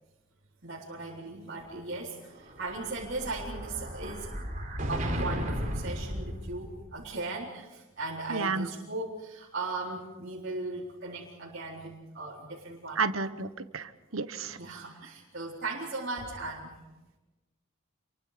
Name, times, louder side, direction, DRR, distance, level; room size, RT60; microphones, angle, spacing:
voice 1, 0.6-4.3 4.9-13.0 14.4-16.8, right 3 dB, 55° right, -6 dB, 4.0 m, -38 dB
Explosion, 2.3-7.0, equal, 40° right, 4.4 m, -35 dB
voice 2, 8.3-8.7 13.0-13.5 13.7-14.6, right 4 dB, 80° right, 11 dB, 1.2 m, -31 dB
28.0 x 23.5 x 5.1 m, 1.1 s
head